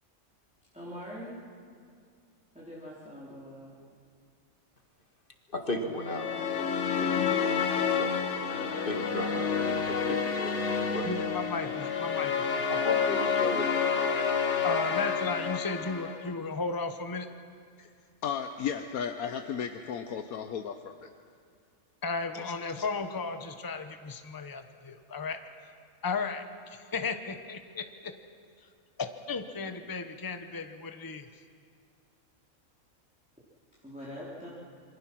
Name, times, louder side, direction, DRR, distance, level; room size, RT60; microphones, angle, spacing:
voice 1, 0.7-1.4 2.5-3.8 33.8-34.5, equal, 5° right, 3.6 m, -43 dB
voice 2, 5.5-8.1 8.8-11.1 12.7-14.7, left 1 dB, 40° left, 2.0 m, -36 dB
sound 1, 6.0-16.4, left 6 dB, 55° left, 1.5 m, -29 dB
voice 3, 11.0-12.5 14.6-17.3 22.0-25.4 26.0-26.4 26.7-28.1 29.0-31.3, left 4 dB, 15° left, 0.9 m, -35 dB
voice 4, 18.2-21.1 22.3-22.8, left 7 dB, 80° left, 1.3 m, -35 dB
27.0 x 24.0 x 6.1 m
omnidirectional pair, 1.5 m